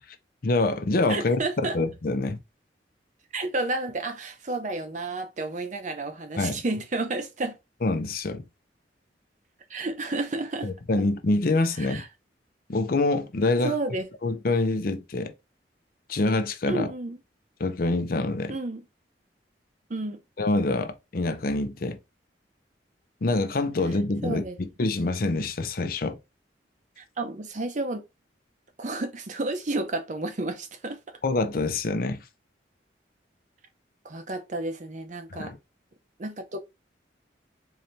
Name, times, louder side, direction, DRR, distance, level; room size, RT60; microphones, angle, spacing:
voice 1, 0.4-1.4 1.7-2.4 6.4-6.6 7.8-8.4 10.6-12.0 12.7-13.7 14.2-15.3 16.1-16.9 17.6-18.5 20.4-22.0 23.2-24.4 24.8-26.2 31.2-32.2 35.3-35.6, left 2 dB, 55° left, 0.6 m, -25 dB
voice 2, 1.1-1.8 3.3-7.6 9.7-10.7 11.8-12.1 13.6-14.1 16.7-17.2 18.5-18.8 19.9-20.2 24.2-24.6 27.0-28.0 28.8-31.0 34.0-35.5 36.2-36.6, right 2 dB, 45° right, 0.7 m, -31 dB
3.9 x 2.8 x 3.2 m
head